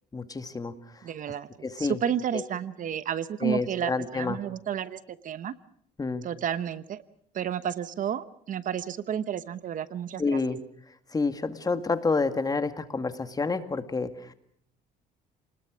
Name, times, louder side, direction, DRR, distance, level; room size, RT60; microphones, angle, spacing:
voice 1, 0.1-0.7 1.6-2.0 2.3-2.4 3.4-4.4 6.0-6.3 10.2-10.6 11.1-14.3, left 3 dB, 20° left, 10 dB, 2.0 m, -28 dB
voice 2, 1.0-1.5 1.8-5.5 6.2-7.0 7.3-10.4, right 9 dB, 50° right, 15 dB, 1.0 m, -31 dB
29.5 x 20.5 x 6.3 m, 0.65 s
cardioid pair, 110°, 17 cm